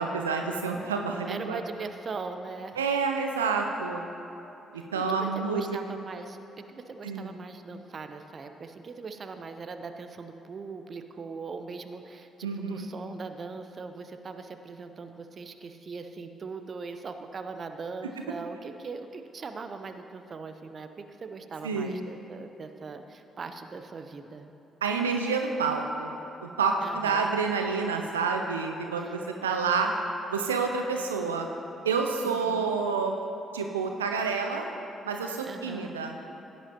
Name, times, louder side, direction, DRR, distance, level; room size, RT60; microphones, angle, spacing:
voice 1, 0.0-1.6 2.8-4.0 4.7-5.8 7.0-7.3 12.4-12.9 21.6-22.0 24.8-26.2 26.4-29.9 30.3-31.5 31.8-33.2 33.5-34.7 35.0-36.2, right 5 dB, 85° right, 3 dB, 0.5 m, -28 dB
voice 2, 1.3-2.8 4.8-24.5 26.8-27.4 29.0-29.1 29.4-29.9 32.2-32.7 35.5-36.0, right 4 dB, 45° right, 8 dB, 0.7 m, -40 dB
16.0 x 10.0 x 2.9 m, 3.0 s
figure-of-eight pair, 45°, 0 cm